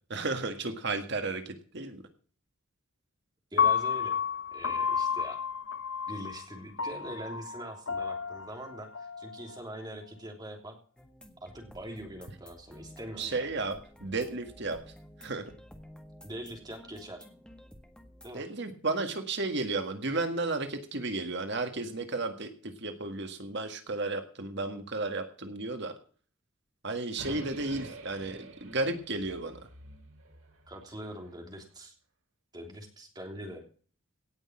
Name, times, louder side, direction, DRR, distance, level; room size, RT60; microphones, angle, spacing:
voice 1, 0.1-2.0 13.2-14.8 15.2-15.5 18.3-25.9 26.8-29.6, right 3 dB, 55° right, 7 dB, 1.8 m, -33 dB
voice 2, 3.5-4.2 4.5-5.4 6.1-10.8 11.4-13.4 16.2-17.3 18.2-18.4 30.7-31.9 32.5-33.6, right 1 dB, 20° right, 3 dB, 3.1 m, -43 dB
Piano, 3.6-9.8, left 7 dB, 65° left, 1.1 m, -31 dB
sound 1, 11.0-18.3, equal, 5° left, 1.7 m, -52 dB
sound 2, 27.2-31.4, right 2 dB, 80° right, 2.8 m, -48 dB
17.5 x 6.5 x 7.3 m, 0.43 s
head